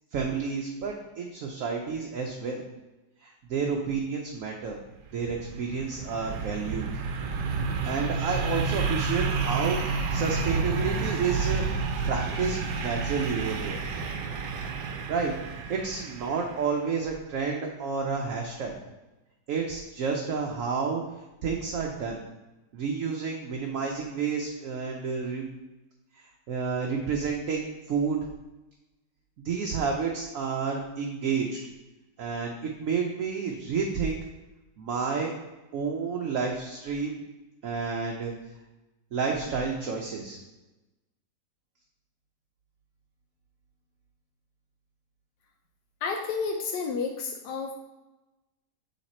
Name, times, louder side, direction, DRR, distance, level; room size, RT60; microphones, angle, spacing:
voice 1, 0.1-2.6 3.2-4.8 5.1-7.0 7.8-14.0 15.1-15.3 15.7-18.7 19.5-21.0 21.4-22.2 22.7-25.4 26.1-28.3 29.4-31.6 32.2-34.2 34.8-35.3 35.7-37.2 37.6-38.3 39.1-40.4, right 5 dB, 65° right, 1 dB, 0.9 m, -30 dB
sound 1, 5.0-16.7, right 4 dB, 85° right, 1.2 m, -30 dB
voice 2, 46.0-47.7, left 5 dB, 85° left, 3 dB, 1.2 m, -31 dB
7.1 x 3.3 x 4.2 m, 1.1 s
omnidirectional pair, 1.8 m